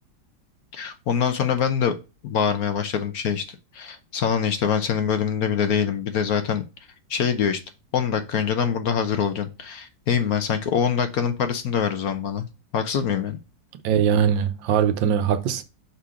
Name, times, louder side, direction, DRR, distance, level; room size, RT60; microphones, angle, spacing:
voice 1, 0.7-1.9 2.2-3.4 3.7-6.6 7.1-7.6 7.9-12.5 12.7-13.4, left 7 dB, 60° left, 1.1 m, -24 dB
voice 2, 13.8-15.6, right 8 dB, 85° right, 1.4 m, -21 dB
5.7 x 3.9 x 4.8 m
omnidirectional pair, 2.0 m